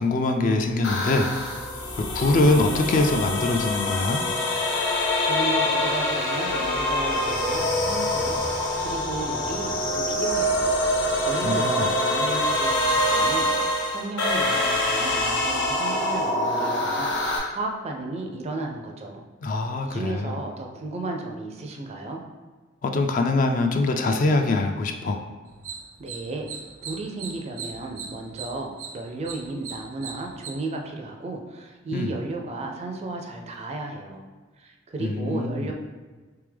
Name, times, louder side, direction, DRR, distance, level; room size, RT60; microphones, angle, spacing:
voice 1, 0.0-1.5 2.1-4.2 11.4-11.9 19.4-20.4 22.8-25.2 31.9-32.1 35.0-35.7, left 2 dB, 40° left, 5 dB, 0.3 m, -23 dB
sound 1, 0.8-17.4, left 1 dB, 55° left, 0.7 m, -25 dB
voice 2, 5.2-10.7 11.2-17.1 17.5-19.2 19.8-22.2 26.0-26.5 26.9-34.2 34.6-35.7, right 2 dB, 30° right, 2 dB, 0.4 m, -34 dB
sound 2, 25.5-30.5, right 6 dB, 80° right, 0.6 m, -39 dB
3.5 x 3.3 x 3.4 m, 1.3 s
head